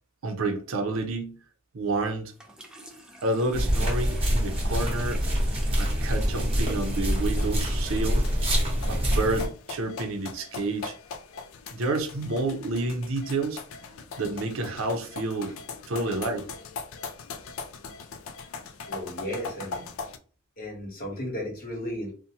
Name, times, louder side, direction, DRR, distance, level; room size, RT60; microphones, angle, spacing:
voice 1, 0.2-1.4 1.7-2.3 3.2-5.2 5.8-8.2 8.9-11.0 11.7-13.6 14.2-15.5 15.9-16.5, right 2 dB, 75° right, 5 dB, 0.5 m, -29 dB
Water tap faucet / Sink (filling or washing), 2.3-9.3, right 1 dB, 5° right, 0.4 m, -47 dB
sound 1, 3.5-9.5, equal, 30° right, 0.9 m, -25 dB
sound 2, 7.4-20.2, left 4 dB, 75° left, 0.3 m, -41 dB
voice 2, 18.9-19.8 20.6-22.1, equal, 45° left, -2 dB, 1.0 m, -34 dB
2.6 x 2.1 x 2.8 m, 0.39 s
head